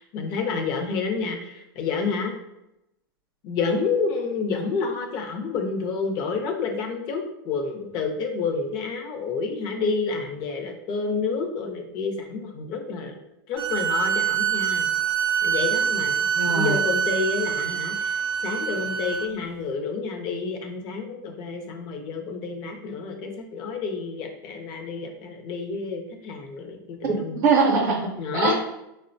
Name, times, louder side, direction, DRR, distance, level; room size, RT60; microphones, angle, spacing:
voice 1, 0.0-2.3 3.4-13.2 13.5-14.9 15.4-27.4 28.2-28.6, left 4 dB, 35° left, 3 dB, 0.5 m, -29 dB
sound 1, 13.6-19.3, right 8 dB, 85° right, 0.6 m, -25 dB
voice 2, 16.3-16.8 27.0-28.1 28.3-28.6, right 4 dB, 45° right, -2 dB, 0.6 m, -22 dB
3.6 x 2.1 x 2.6 m, 0.87 s
supercardioid pair, 145°, 12 cm